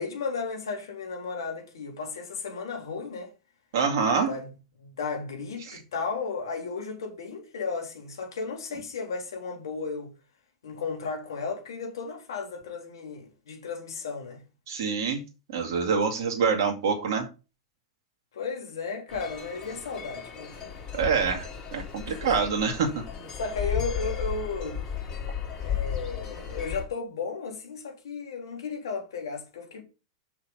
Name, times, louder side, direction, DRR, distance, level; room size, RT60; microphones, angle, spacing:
voice 1, 0.0-3.3 4.3-4.5 4.8-10.1 10.6-14.4 18.3-20.7 22.1-22.4 23.4-24.8 25.6-29.8, left 4 dB, 70° left, 3.6 m, -34 dB
voice 2, 3.7-4.3 5.6-5.8 14.7-15.2 15.5-17.3 20.9-23.0, right 5 dB, 60° right, 2.2 m, -26 dB
sound 1, 19.1-26.8, left 8 dB, 30° left, 4.0 m, -34 dB
6.5 x 5.8 x 5.7 m
figure-of-eight pair, 95°, 2 cm